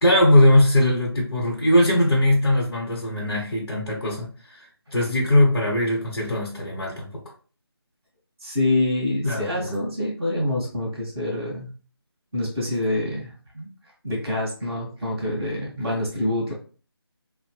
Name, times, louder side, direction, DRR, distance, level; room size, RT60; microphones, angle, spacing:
voice 1, 0.0-7.1 9.2-9.7, left 1 dB, 65° left, 1.0 m, -20 dB
voice 2, 8.4-11.7 12.3-13.7 14.0-16.5, left 1 dB, 5° right, 0.4 m, -26 dB
3.0 x 2.1 x 3.0 m
figure-of-eight pair, 170°, 13 cm